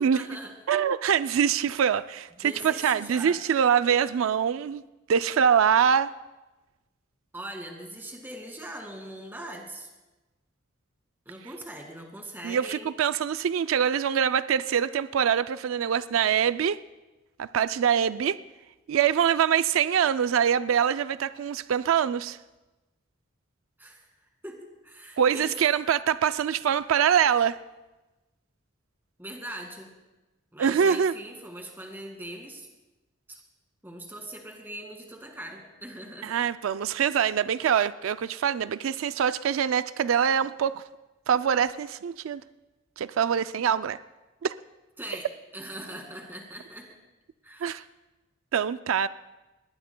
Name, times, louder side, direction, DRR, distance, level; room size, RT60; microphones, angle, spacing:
voice 1, 0.0-0.5 2.4-3.4 7.3-9.9 11.3-12.9 23.8-24.0 24.4-25.5 29.2-29.9 30.5-32.7 33.3-33.4 33.8-36.4 45.0-45.3 45.5-47.0 47.4-47.8, right 1 dB, 10° right, 2.0 m, -41 dB
voice 2, 0.7-4.8 5.1-6.1 12.4-16.8 17.4-18.4 18.9-22.4 25.2-27.6 30.6-31.1 36.2-40.8 41.3-42.4 43.0-44.0 44.4-44.5 47.6-47.8 48.5-49.1, right 8 dB, 90° right, 0.4 m, -24 dB
20.0 x 18.5 x 2.2 m
head